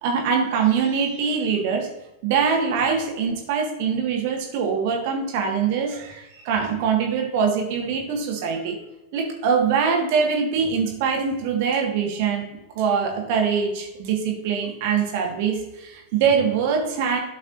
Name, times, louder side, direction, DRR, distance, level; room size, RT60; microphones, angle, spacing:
voice 1, 0.0-1.9 2.2-8.8 9.1-12.4 12.8-17.2, right 6 dB, 50° right, 1 dB, 1.6 m, -23 dB
12.0 x 5.3 x 2.6 m, 0.92 s
figure-of-eight pair, 90°, 0 cm